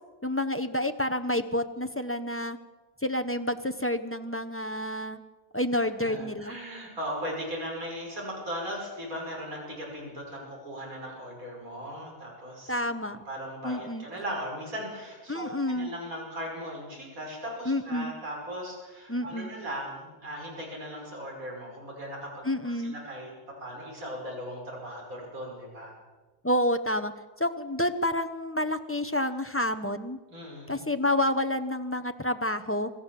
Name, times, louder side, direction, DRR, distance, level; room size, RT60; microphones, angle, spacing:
voice 1, 0.2-2.6 3.0-5.2 5.5-6.6 12.7-13.2 13.6-14.0 15.3-15.9 17.7-18.1 19.1-19.5 22.4-22.9 26.4-27.1 27.4-30.2 30.7-32.9, left 1 dB, 15° left, 7 dB, 0.4 m, -29 dB
voice 2, 6.0-25.9 30.3-30.8, equal, 55° right, -2 dB, 6.3 m, -38 dB
26.0 x 14.0 x 7.6 m, 1.2 s
omnidirectional pair, 1.8 m